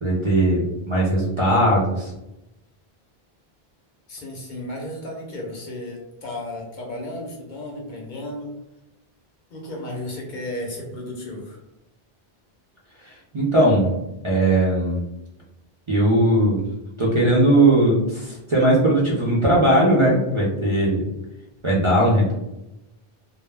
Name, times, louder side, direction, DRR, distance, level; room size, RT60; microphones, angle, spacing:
voice 1, 0.0-2.1 13.0-13.9 14.2-15.0 15.9-16.6 17.0-21.1 21.6-22.3, right 1 dB, 40° right, -5 dB, 0.5 m, -19 dB
voice 2, 4.1-8.5 9.5-11.6, left 1 dB, 55° left, -1 dB, 0.7 m, -34 dB
2.2 x 2.1 x 3.2 m, 0.92 s
omnidirectional pair, 1.0 m